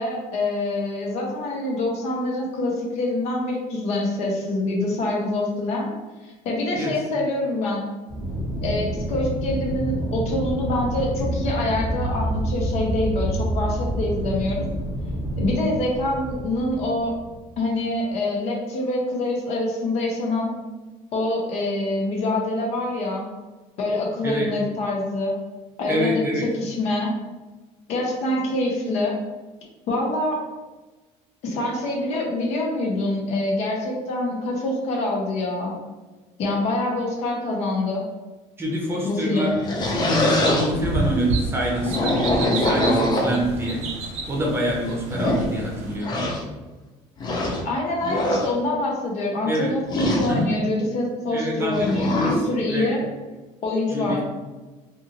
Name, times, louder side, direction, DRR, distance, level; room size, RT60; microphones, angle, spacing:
voice 1, 0.0-5.9 6.2-7.9 8.6-14.6 15.4-17.2 17.6-20.5 21.1-23.3 23.8-25.3 25.8-27.1 27.9-29.2 29.9-30.4 31.4-35.8 36.4-38.0 39.0-39.5 47.6-53.0 53.6-54.2, left 2 dB, 60° left, -1 dB, 0.8 m, -25 dB
Aircraft, 8.1-17.5, right 1 dB, 10° left, 1.1 m, -28 dB
voice 2, 25.9-26.4 38.6-43.8 44.3-46.3 49.5-49.7 50.3-50.5 51.3-52.9 53.9-54.2, equal, 20° right, -2 dB, 0.7 m, -26 dB
sound 1, 39.4-40.7 41.7-43.7 44.4-44.5 45.0-45.5 46.0-46.4 47.2-47.6 48.0-48.5 49.8-50.3 51.7-52.4, left 1 dB, 35° left, 0.5 m, -23 dB
sound 2, 39.8-46.0, right 3 dB, 60° right, 0.6 m, -31 dB
2.6 x 2.6 x 2.8 m, 1.2 s
cardioid pair, 125°, 13 cm